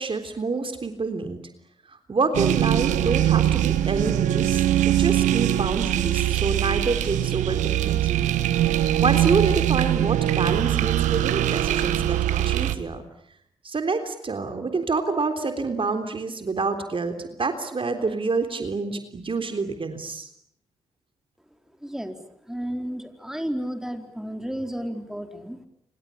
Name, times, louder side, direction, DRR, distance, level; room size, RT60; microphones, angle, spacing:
voice 1, 0.0-1.4 1.9-8.3 8.7-13.0 13.6-20.3, right 4 dB, 45° right, 7 dB, 3.6 m, -27 dB
sound 1, 2.3-12.7, right 12 dB, 80° right, 1.4 m, -22 dB
voice 2, 21.8-22.2 22.5-25.6, equal, 5° right, 6 dB, 4.3 m, -32 dB
27.5 x 25.0 x 8.6 m, 0.74 s
hypercardioid pair, 40°, 13 cm